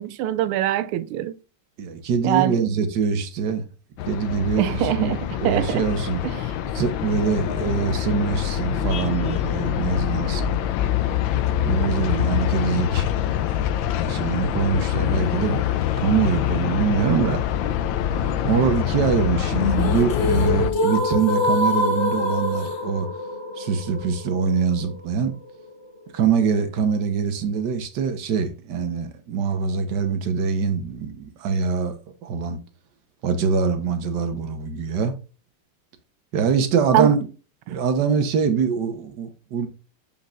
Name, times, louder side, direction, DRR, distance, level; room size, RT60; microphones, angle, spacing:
voice 1, 0.0-1.4 2.2-2.7 4.5-5.9 6.2-6.5 36.9-37.1 37.7-37.8, right 12 dB, 85° right, 1.5 m, -23 dB
voice 2, 1.8-3.6 4.1-6.2 6.7-10.6 11.6-13.1 14.0-15.6 16.0-17.4 18.4-23.1 23.6-25.3 26.1-31.9 32.2-32.6 33.2-35.2 36.3-37.3 37.7-39.7, right 6 dB, 60° right, 1.5 m, -23 dB
sound 1, 4.0-20.7, left 11 dB, 75° left, 1.2 m, -25 dB
sound 2, 19.5-25.6, left 2 dB, 40° left, 1.1 m, -25 dB
7.8 x 5.2 x 2.5 m
omnidirectional pair, 2.4 m